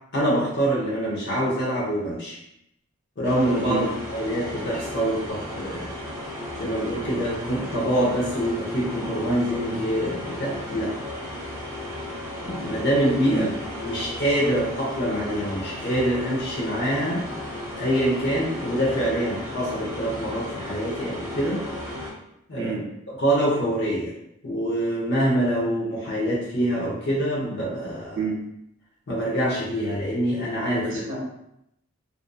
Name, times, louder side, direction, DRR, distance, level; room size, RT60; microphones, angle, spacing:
voice 1, 0.1-2.4 3.2-5.9 6.6-11.0 12.4-13.5 13.8-17.3 17.8-21.6 22.5-22.7 23.2-24.1 24.4-28.2 29.1-30.9, right 1 dB, 55° left, -6 dB, 0.6 m, -25 dB
sound 1, 3.2-22.1, left 1 dB, 15° right, 0.5 m, -35 dB
voice 2, 22.6-22.9 28.2-28.4 30.8-31.2, right 4 dB, 60° right, -3 dB, 0.5 m, -29 dB
2.5 x 2.4 x 2.2 m, 0.80 s
head